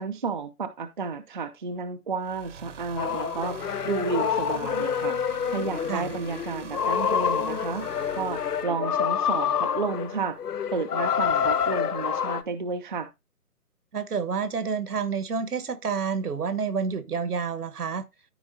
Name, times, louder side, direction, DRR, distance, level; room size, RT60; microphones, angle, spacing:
voice 1, 0.0-3.6 3.8-7.9 8.1-10.4 10.7-13.1, right 4 dB, 35° right, 0.6 m, -32 dB
sound 1, 2.2-8.6, right 6 dB, 50° right, 1.0 m, -43 dB
sound 2, 3.0-12.4, left 8 dB, 80° left, 0.8 m, -27 dB
voice 2, 13.9-18.0, right 5 dB, 75° right, 1.4 m, -29 dB
13.5 x 4.7 x 2.7 m
hypercardioid pair, 155°, 46 cm